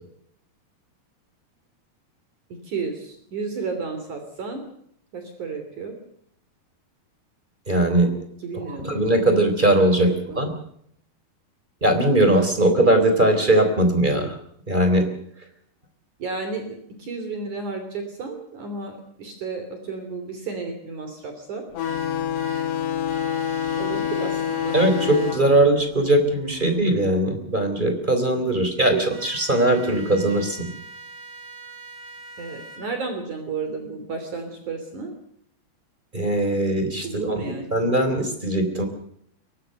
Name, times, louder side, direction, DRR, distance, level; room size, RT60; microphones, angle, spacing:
voice 1, 2.6-4.6 5.1-6.0 8.4-9.0 10.0-10.4 16.2-21.7 23.7-24.8 25.3-25.7 28.9-29.0 32.4-35.1 37.0-37.7, right 4 dB, 50° right, 6 dB, 4.3 m, -32 dB
voice 2, 7.7-8.1 8.7-10.5 11.8-14.3 14.7-15.0 24.7-30.7 36.1-37.4 37.7-38.9, right 1 dB, 10° right, 7 dB, 3.3 m, -20 dB
sound 1, 21.7-26.9, left 9 dB, 90° left, 3.9 m, -27 dB
sound 2, 21.8-22.6 23.1-25.3 29.1-32.8, right 5 dB, 15° left, 7.5 m, -42 dB
23.0 x 19.0 x 6.6 m, 0.70 s
omnidirectional pair, 4.6 m